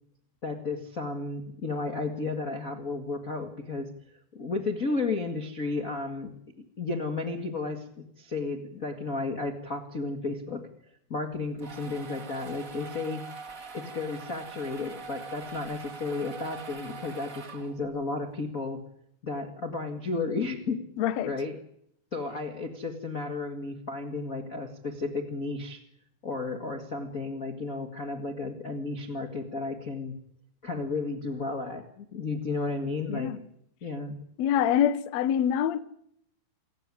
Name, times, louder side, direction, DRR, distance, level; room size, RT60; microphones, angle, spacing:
voice 1, 0.4-3.9 4.3-6.3 6.8-10.6 11.1-13.2 13.7-18.8 19.2-20.8 21.2-21.5 22.1-25.8 26.2-30.1 30.6-33.3 33.8-34.1, left 3 dB, 45° left, 1.1 m, -33 dB
sound 1, 11.3-18.0, right 4 dB, 35° right, 1.4 m, -43 dB
voice 2, 21.0-21.3 33.1-33.4 34.4-35.8, left 9 dB, 75° left, 1.6 m, -25 dB
27.5 x 17.0 x 10.0 m
omnidirectional pair, 4.7 m